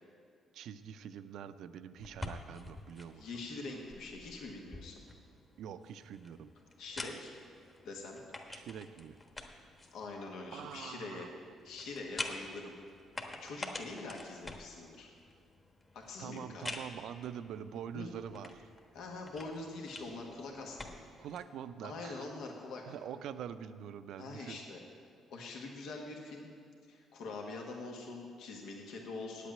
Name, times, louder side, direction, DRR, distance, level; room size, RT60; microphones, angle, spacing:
voice 1, 0.5-3.3 5.6-6.5 8.5-9.2 10.5-11.4 16.2-18.7 21.2-22.3 22.9-24.6, right 8 dB, 75° right, 12 dB, 0.5 m, -45 dB
sound 1, 2.0-21.5, left 2 dB, 25° left, 1.3 m, -48 dB
voice 2, 3.2-5.0 6.8-7.3 7.8-8.2 9.9-11.3 11.6-12.7 13.4-15.1 15.9-16.7 17.9-18.1 18.9-21.1 21.8-22.8 24.2-24.8 25.3-26.5 26.9-29.5, left 3 dB, 80° left, 0 dB, 1.5 m, -44 dB
8.9 x 8.3 x 8.9 m, 2.4 s
cardioid pair, 95°, 0 cm